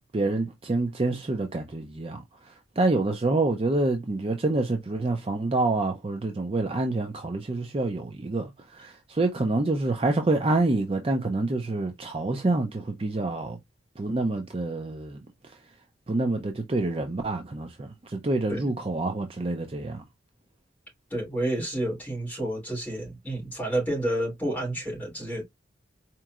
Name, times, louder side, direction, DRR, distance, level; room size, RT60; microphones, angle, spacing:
voice 1, 0.1-13.6 14.0-15.2 16.1-20.0, right 2 dB, 30° right, 0.4 m, -27 dB
voice 2, 21.1-25.4, right 1 dB, 10° left, 2.9 m, -30 dB
4.4 x 2.9 x 2.4 m
head